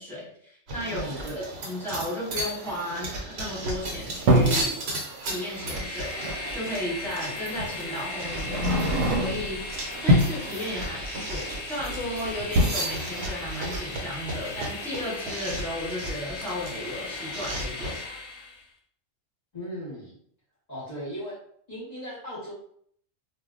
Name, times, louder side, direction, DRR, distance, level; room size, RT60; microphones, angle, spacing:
voice 1, 0.0-1.0 1.4-4.8 5.2-18.0, equal, ahead, -6 dB, 1.0 m, -34 dB
sound 1, 0.7-18.0, right 1 dB, 60° right, 0.9 m, -36 dB
voice 2, 0.8-1.4 19.5-20.2 20.7-21.4 21.7-22.5, equal, 35° left, -7 dB, 0.8 m, -37 dB
sound 2, 3.6-4.7 6.3-6.4 7.6-7.8 8.3-9.6 9.9-10.4 11.8-12.1 12.4-12.7, equal, 85° right, 1.0 m, -23 dB
Train, 5.2-18.7, left 3 dB, 65° left, 0.8 m, -38 dB
2.1 x 2.1 x 3.7 m, 0.65 s
omnidirectional pair, 1.3 m